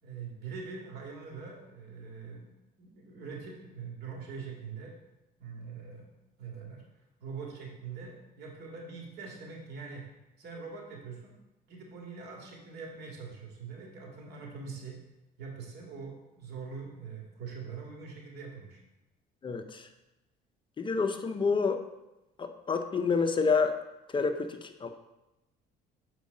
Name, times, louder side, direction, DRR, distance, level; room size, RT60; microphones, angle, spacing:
voice 1, 0.0-2.5 2.8-4.9 5.4-6.1 6.4-6.8 7.2-10.0 10.4-11.3 11.7-15.0 15.4-18.8, right 5 dB, 75° right, -1 dB, 2.2 m, -43 dB
voice 2, 19.4-19.9 20.8-21.8 22.4-23.8 24.1-24.9, left 4 dB, 30° left, 7 dB, 0.6 m, -28 dB
6.9 x 4.6 x 5.3 m, 0.98 s
cardioid pair, 110°, 17 cm